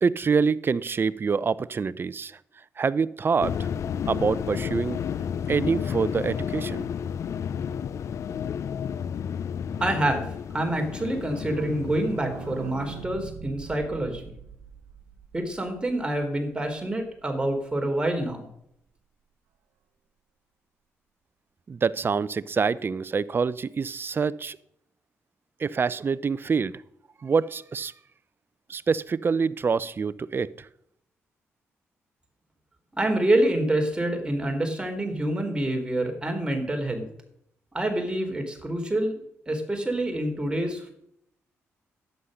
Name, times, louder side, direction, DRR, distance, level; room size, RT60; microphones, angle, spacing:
voice 1, 0.0-2.4 2.8-3.7 4.1-5.0 5.5-6.9 21.7-24.6 25.6-26.7 27.2-27.9 28.7-30.7, right 5 dB, 45° right, 18 dB, 0.6 m, -26 dB
sound 1, 3.4-13.1, left 8 dB, 65° left, 0.6 m, -32 dB
voice 2, 9.8-14.3 15.3-18.5 32.9-37.1 37.7-39.1 39.5-40.9, right 1 dB, 15° right, 3 dB, 3.7 m, -27 dB
sound 2, 10.9-16.5 16.8-16.9 17.0-17.1 17.4-17.5, right 9 dB, 80° right, 1.0 m, -42 dB
11.5 x 9.8 x 6.5 m, 0.75 s
supercardioid pair, 60°, 5 cm